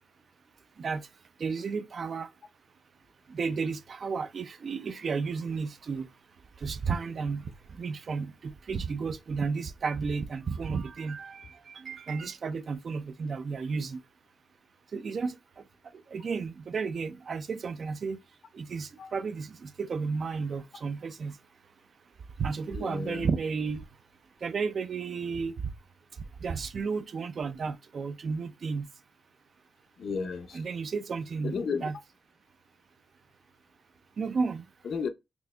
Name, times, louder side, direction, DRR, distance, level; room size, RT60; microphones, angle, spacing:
voice 1, 1.4-2.3 3.3-6.1 6.6-7.5 7.7-14.0 14.9-15.4 16.1-18.2 18.5-21.4 22.4-23.8 24.4-25.5 26.4-28.9 30.5-32.0 34.2-34.7, right 5 dB, 45° right, 0.3 m, -33 dB
voice 2, 22.7-23.3 30.0-30.6 31.4-31.9 34.8-35.1, left 5 dB, 60° left, 0.5 m, -33 dB
4.2 x 2.7 x 2.2 m
wide cardioid pair, 175°, 0 cm